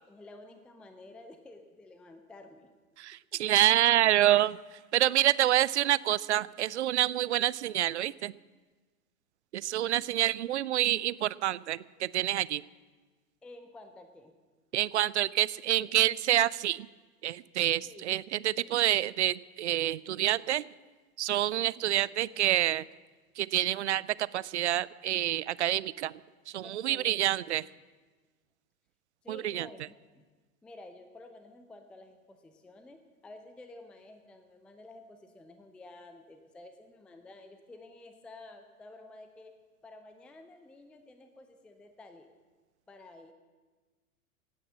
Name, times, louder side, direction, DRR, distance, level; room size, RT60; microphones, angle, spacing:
voice 1, 0.1-2.7 3.3-3.4 10.0-10.1 13.4-14.3 17.8-18.1 26.6-27.5 29.2-30.2 30.6-39.5 39.8-42.3 42.9-43.3, left 2 dB, 5° left, 8 dB, 0.5 m, -51 dB
voice 2, 3.0-4.6 4.9-8.3 9.5-12.6 14.7-16.9 17.2-20.6 21.2-22.8 23.4-24.0 24.3-26.1 26.5-27.7 29.3-29.7, right 13 dB, 55° right, 21 dB, 0.5 m, -27 dB
16.5 x 9.2 x 7.4 m, 1.3 s
figure-of-eight pair, 95°, 43 cm